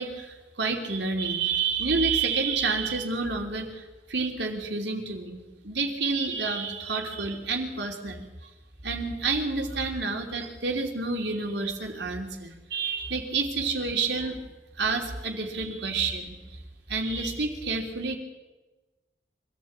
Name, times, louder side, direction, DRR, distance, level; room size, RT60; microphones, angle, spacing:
voice 1, 0.0-8.3 8.8-14.4 14.8-16.6 16.9-18.2, right 4 dB, 70° right, 2 dB, 3.2 m, -29 dB
24.5 x 14.0 x 8.7 m, 1.2 s
head